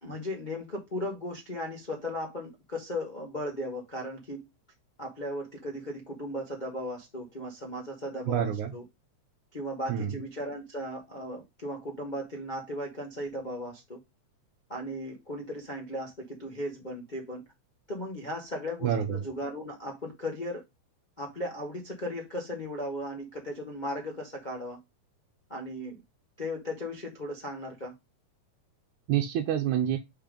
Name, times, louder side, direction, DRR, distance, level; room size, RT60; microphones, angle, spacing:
voice 1, 0.0-4.4 5.0-8.8 9.5-14.0 14.7-17.4 17.9-20.6 21.2-24.8 25.5-26.0 26.4-27.9, left 1 dB, 75° left, 0.4 m, -36 dB
voice 2, 8.3-8.7 9.9-10.2 18.8-19.1 29.1-30.0, right 10 dB, 85° right, 2.2 m, -27 dB
5.4 x 3.6 x 5.1 m
omnidirectional pair, 3.4 m